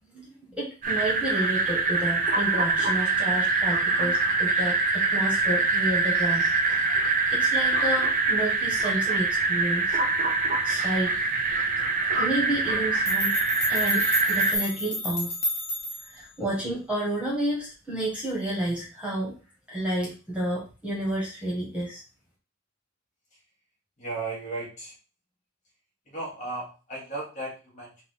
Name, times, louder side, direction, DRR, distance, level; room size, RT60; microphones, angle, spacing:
voice 1, 0.1-10.0 10.6-11.2 12.2-13.3 13.7-15.4 16.0-19.3 19.7-22.0, right 1 dB, 5° right, -5 dB, 1.5 m, -31 dB
sound 1, 0.8-14.6, right 3 dB, 40° right, 0.6 m, -24 dB
sound 2, 13.1-16.2, left 1 dB, 65° left, 1.7 m, -31 dB
voice 2, 24.0-24.9 26.1-28.0, right 2 dB, 35° left, -4 dB, 1.8 m, -35 dB
4.0 x 2.5 x 4.7 m, 0.34 s
head